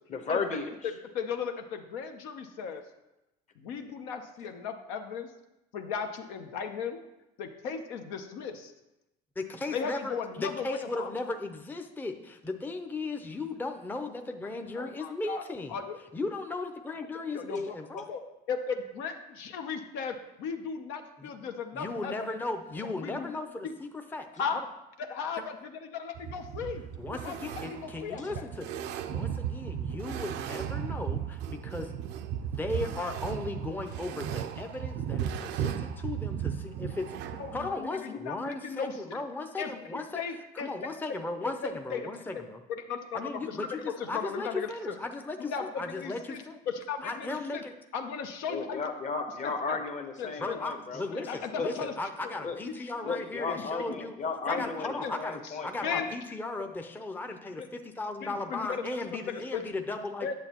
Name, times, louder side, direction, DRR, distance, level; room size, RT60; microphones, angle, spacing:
voice 1, 0.1-0.7 28.2-28.3 48.5-51.0 51.5-51.9 52.4-52.6 53.0-56.0, left 4 dB, 40° left, 5 dB, 1.0 m, -34 dB
voice 2, 1.1-2.8 3.6-5.3 5.7-7.0 7.4-8.7 9.7-11.1 14.7-15.4 15.7-16.0 17.3-18.2 18.5-22.4 23.0-23.4 23.6-23.7 24.4-24.6 25.0-26.8 27.1-28.2 37.4-38.9 39.6-40.9 41.6-42.1 42.7-44.9 45.5-47.6 47.9-48.8 49.7-49.8 50.2-50.6 51.1-51.9 52.2-52.3 53.5-53.6 54.5-55.1 55.8-56.1 57.6-57.7 58.2-58.9 59.3-59.6 60.2-60.3, left 6 dB, 80° left, 5 dB, 0.7 m, -36 dB
voice 3, 9.4-15.8 16.1-18.1 21.2-21.3 21.7-24.6 25.4-25.5 26.6-26.7 27.0-28.8 29.1-31.9 32.4-37.1 37.5-40.2 40.5-42.6 43.1-46.6 47.0-47.7 50.4-54.2 54.5-60.3, left 2 dB, 10° left, 5 dB, 0.5 m, -36 dB
sound 1, 26.2-37.8, right 9 dB, 65° right, 0.5 m, -36 dB
8.7 x 6.9 x 2.9 m, 0.93 s
supercardioid pair, 85°, 19 cm